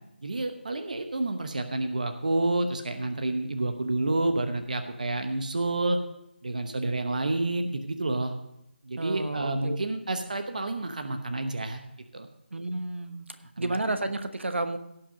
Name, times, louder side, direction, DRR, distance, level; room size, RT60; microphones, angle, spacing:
voice 1, 0.2-6.0 6.4-8.3 8.8-11.8 12.1-12.3 13.6-13.8, right 2 dB, 40° right, 7 dB, 0.9 m, -29 dB
voice 2, 9.0-9.8 12.5-13.3 13.6-14.8, right 2 dB, 80° right, 8 dB, 1.2 m, -31 dB
17.0 x 5.9 x 5.1 m, 0.83 s
figure-of-eight pair, 180°, 6 cm